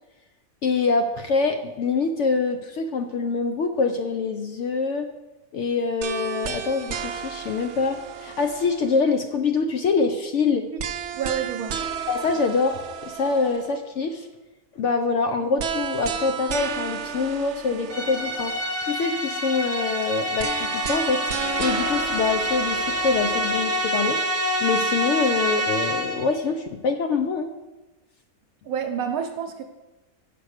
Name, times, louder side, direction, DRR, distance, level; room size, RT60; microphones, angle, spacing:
voice 1, 0.6-5.1 5.5-10.7 12.1-14.3 14.8-18.5 18.8-21.3 21.6-24.2 24.6-27.5, left 4 dB, 65° left, 6 dB, 0.8 m, -25 dB
sound 1, 6.0-9.1 10.8-13.8 15.6-18.8 20.4-23.8, right 7 dB, 65° right, 0.8 m, -33 dB
voice 2, 11.1-11.8 28.6-29.6, right 7 dB, 80° right, 4 dB, 1.1 m, -28 dB
sound 2, 17.9-26.4, equal, 15° right, 0.7 m, -26 dB
7.5 x 5.0 x 6.4 m, 1.1 s
omnidirectional pair, 1.5 m